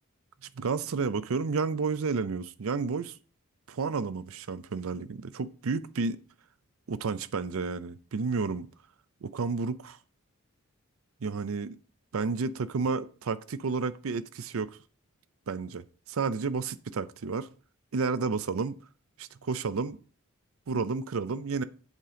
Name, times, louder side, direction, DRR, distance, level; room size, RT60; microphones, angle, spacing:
voice 1, 0.5-3.2 3.7-6.2 6.9-8.7 9.2-10.0 11.2-11.8 12.1-14.8 15.5-17.5 17.9-18.8 19.2-20.0 20.7-21.6, right 4 dB, 70° right, 0.5 m, -31 dB
8.3 x 3.7 x 5.0 m
head